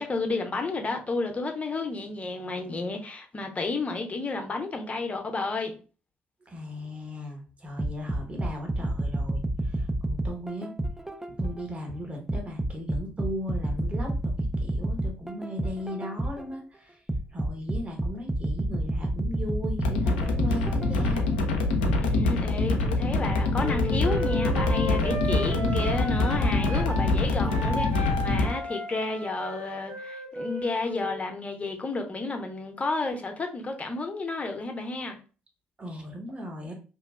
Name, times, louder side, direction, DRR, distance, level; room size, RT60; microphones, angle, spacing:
voice 1, 0.0-5.7 22.0-35.2, left 3 dB, 25° left, 0.7 m, -31 dB
voice 2, 6.5-10.7 11.4-17.0 17.3-21.2 35.8-36.7, equal, 25° right, 1.0 m, -37 dB
sound 1, 7.8-11.7 12.3-16.5 17.1-21.3 21.9-22.0, right 1 dB, 5° right, 0.3 m, -30 dB
sound 2, 19.8-28.5, left 2 dB, 80° left, 0.4 m, -25 dB
Wind instrument woodwind instrument, 23.5-27.1 27.4-31.2, equal, 55° right, 1.1 m, -34 dB
2.9 x 2.3 x 2.3 m
figure-of-eight pair, 45°, 5 cm